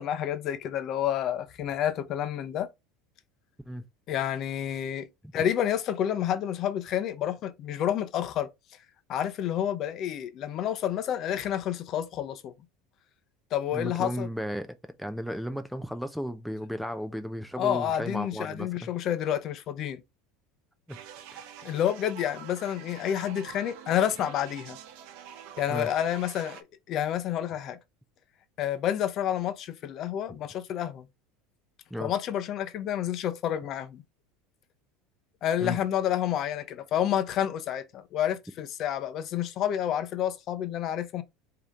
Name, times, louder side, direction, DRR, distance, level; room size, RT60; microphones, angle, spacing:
voice 1, 0.0-2.7 4.1-5.1 5.3-8.5 9.1-12.5 13.5-14.3 17.6-20.0 21.6-24.8 25.6-27.8 28.6-31.1 32.0-34.0 35.4-41.2, left 10 dB, 45° left, 0.7 m, -29 dB
voice 2, 13.7-18.9 20.9-21.0 21.3-21.5 25.7-25.9 30.3-30.4 31.9-32.1 35.6-35.8, equal, ahead, 0.5 m, -35 dB
sound 1, 20.9-26.6, right 9 dB, 65° right, 0.9 m, -46 dB
4.9 x 2.9 x 3.7 m
supercardioid pair, 125°, 0 cm